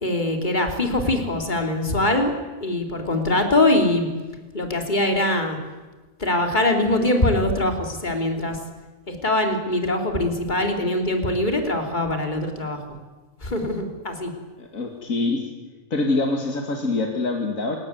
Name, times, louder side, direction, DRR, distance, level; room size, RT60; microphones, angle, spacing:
voice 1, 0.0-2.3 2.6-4.1 4.5-5.6 6.2-8.6 9.1-12.8 13.4-14.3, left 1 dB, 35° left, 4 dB, 3.4 m, -22 dB
voice 2, 14.6-15.5 15.9-17.8, left 3 dB, 80° left, 3 dB, 2.6 m, -25 dB
27.5 x 17.5 x 9.5 m, 1.3 s
omnidirectional pair, 1.4 m